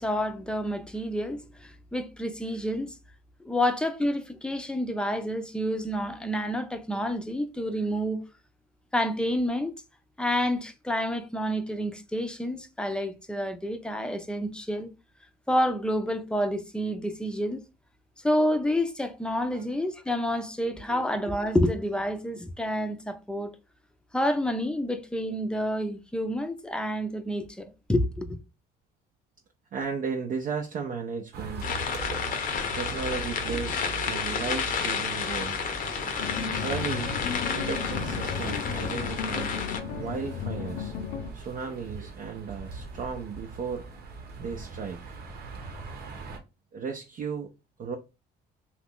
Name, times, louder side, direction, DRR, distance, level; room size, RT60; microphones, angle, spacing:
voice 1, 0.0-2.9 3.4-8.2 8.9-9.7 10.2-14.9 15.5-17.6 18.2-23.5 24.1-28.4, equal, 5° left, 0.5 m, -29 dB
voice 2, 29.7-31.8 32.7-35.6 36.6-37.2 37.5-39.5 39.9-40.9 41.3-43.9 44.4-45.2 46.7-47.5 47.8-48.0, right 5 dB, 55° right, 0.6 m, -35 dB
sound 1, 31.3-46.4, right 4 dB, 70° right, 0.9 m, -41 dB
sound 2, 31.6-39.8, left 6 dB, 55° left, 0.7 m, -31 dB
sound 3, 36.2-41.3, left 7 dB, 90° left, 0.6 m, -35 dB
2.9 x 2.4 x 3.6 m
cardioid pair, 85°, 17 cm